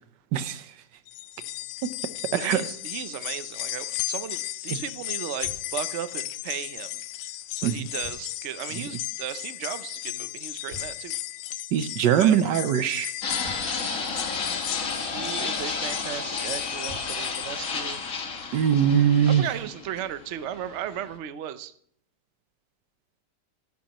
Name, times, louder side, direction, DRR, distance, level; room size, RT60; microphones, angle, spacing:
voice 1, 0.3-0.6 1.8-1.9 2.3-2.6 7.6-7.9 11.7-13.1 18.5-19.4, right 9 dB, 90° right, 12 dB, 1.4 m, -22 dB
sound 1, 1.1-18.4 18.8-18.9 20.0-20.1, left 15 dB, 80° left, 1.2 m, -35 dB
voice 2, 2.3-7.0 7.6-11.1 12.2-12.4 15.1-18.0 19.3-21.7, right 10 dB, 60° right, 12 dB, 0.8 m, -36 dB
Knock, 5.4-6.1 8.0-8.7 10.7-11.5 13.4-14.2 16.5-16.6 16.9-17.7, left 2 dB, 45° right, 5.5 m, -47 dB
Fixed-wing aircraft airplane, 13.2-21.1, left 4 dB, 50° left, 1.8 m, -32 dB
13.0 x 11.5 x 3.0 m, 0.67 s
omnidirectional pair, 1.9 m